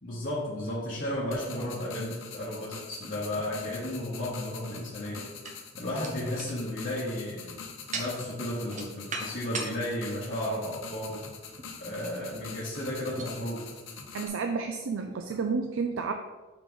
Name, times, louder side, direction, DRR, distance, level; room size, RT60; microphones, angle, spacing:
voice 1, 0.0-5.3 5.8-7.6 7.9-11.3 11.8-13.7, left 1 dB, 45° left, -8 dB, 1.2 m, -34 dB
sound 1, 1.3-14.3, left 5 dB, 70° left, 0.8 m, -44 dB
sound 2, 3.3-4.3 5.0-9.8 10.3-10.5 11.6-11.8 12.0-12.3 13.2-13.4 14.2-14.3 15.1-15.2, right 3 dB, 40° right, 0.8 m, -40 dB
voice 2, 14.1-16.1, right 4 dB, 70° right, 5 dB, 0.4 m, -31 dB
5.2 x 4.9 x 3.9 m, 1.2 s
head